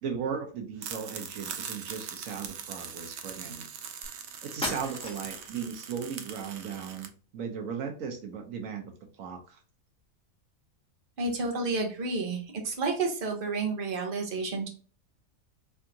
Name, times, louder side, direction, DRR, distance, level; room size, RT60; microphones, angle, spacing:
voice 1, 0.0-3.7 4.4-9.6, right 6 dB, 80° right, 4 dB, 1.1 m, -37 dB
sound 1, 0.8-7.1, right 7 dB, 65° right, 0.8 m, -41 dB
sound 2, 4.0-4.1 4.6-5.5, left 1 dB, 5° left, 1.2 m, -36 dB
voice 2, 11.2-14.7, right 3 dB, 45° right, 1 dB, 1.0 m, -30 dB
3.5 x 3.5 x 2.8 m, 0.39 s
omnidirectional pair, 1.4 m